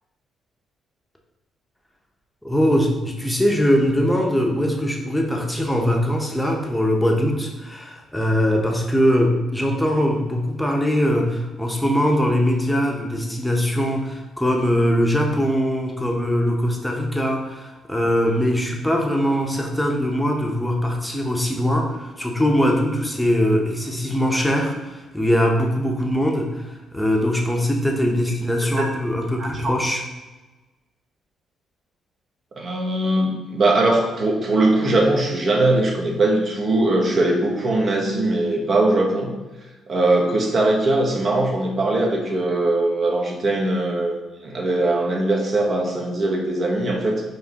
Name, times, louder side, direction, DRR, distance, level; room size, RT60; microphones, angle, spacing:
voice 1, 2.4-30.0, equal, 5° left, 1 dB, 0.8 m, -21 dB
voice 2, 29.4-29.7 32.5-39.3 39.9-47.2, right 2 dB, 50° right, 0 dB, 0.9 m, -21 dB
4.8 x 3.2 x 2.8 m, 1.2 s
cardioid pair, 90°, 0 cm